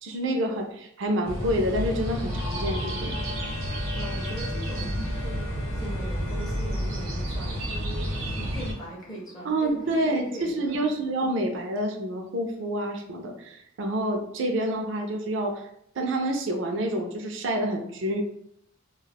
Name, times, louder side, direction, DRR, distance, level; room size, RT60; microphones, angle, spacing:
voice 1, 0.0-3.1 9.4-15.7 16.0-18.2, right 1 dB, 65° right, 3 dB, 0.4 m, -28 dB
sound 1, 1.2-8.7, equal, 80° right, 0.8 m, -30 dB
sound 2, 2.3-9.9, left 4 dB, 75° left, 0.4 m, -43 dB
voice 2, 3.9-10.9, right 1 dB, 20° left, -4 dB, 0.5 m, -40 dB
2.3 x 2.0 x 3.3 m, 0.75 s
head